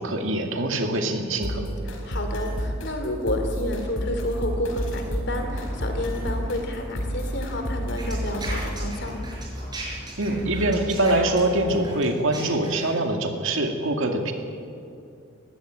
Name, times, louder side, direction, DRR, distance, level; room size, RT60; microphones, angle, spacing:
voice 1, 0.0-1.7 10.2-14.3, right 1 dB, 65° right, 4 dB, 2.3 m, -24 dB
sound 1, 1.4-8.8, equal, 70° left, 4.3 m, -30 dB
voice 2, 1.9-9.2, left 1 dB, 55° left, 5 dB, 2.9 m, -30 dB
sound 2, 5.3-11.9, equal, ahead, 6.3 m, -39 dB
sound 3, 8.0-13.0, right 2 dB, 20° right, 6.0 m, -37 dB
20.0 x 15.5 x 9.2 m, 2.5 s
head